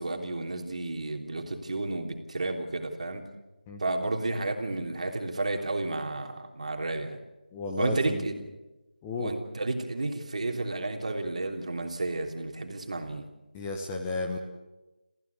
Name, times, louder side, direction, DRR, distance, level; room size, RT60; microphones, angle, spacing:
voice 1, 0.0-3.2 3.8-7.2 7.8-8.5 9.2-13.3, right 2 dB, 50° right, 4 dB, 3.2 m, -32 dB
voice 2, 7.5-8.2 9.0-9.3 13.5-14.4, left 2 dB, 10° left, 0 dB, 1.2 m, -33 dB
27.0 x 15.5 x 8.4 m, 1.1 s
figure-of-eight pair, 170°, 5 cm